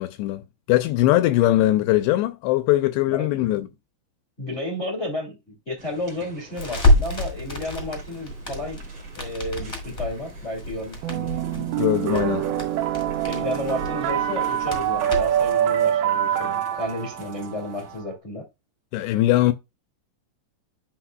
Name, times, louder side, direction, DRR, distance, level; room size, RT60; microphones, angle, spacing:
voice 1, 0.0-3.7 11.6-12.5 18.9-19.5, left 15 dB, 85° left, 2.6 m, -21 dB
voice 2, 3.1-3.6 4.4-8.8 9.1-11.3 13.2-18.4, left 1 dB, 50° left, 0.8 m, -32 dB
sound 1, 5.8-18.0, equal, 35° right, 2.5 m, -48 dB
Crackle, 6.5-15.5, left 1 dB, 25° left, 1.1 m, -28 dB
sound 2, 11.0-18.0, right 11 dB, 80° right, 2.2 m, -25 dB
11.5 x 4.8 x 2.2 m
omnidirectional pair, 5.3 m